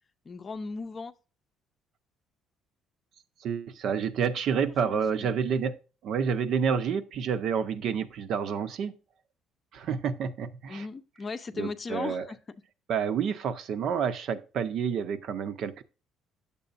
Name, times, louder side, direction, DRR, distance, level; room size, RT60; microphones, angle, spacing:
voice 1, 0.2-1.1 4.8-5.4 10.7-12.4, left 4 dB, 30° left, 0.6 m, -37 dB
voice 2, 3.4-5.8 6.0-8.9 9.7-10.8 11.6-12.3 12.9-15.8, right 7 dB, 60° right, 0.8 m, -29 dB
9.6 x 6.9 x 2.6 m
cardioid pair, 125°, 0 cm